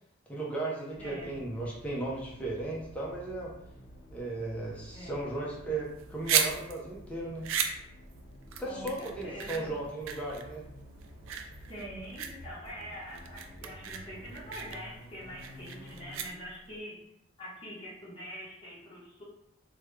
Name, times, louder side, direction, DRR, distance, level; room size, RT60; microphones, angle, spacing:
voice 1, 0.3-3.5 4.1-7.4 8.6-10.6, right 2 dB, 5° left, -5 dB, 0.6 m, -36 dB
sound 1, 0.9-16.3, equal, 50° left, 0.6 m, -51 dB
voice 2, 1.0-1.3 4.9-5.2 8.6-9.7 11.7-16.9 17.4-19.2, equal, 25° left, -7 dB, 1.0 m, -44 dB
sound 2, 5.9-16.8, right 8 dB, 85° right, 0.4 m, -35 dB
3.5 x 2.2 x 3.1 m, 0.77 s
head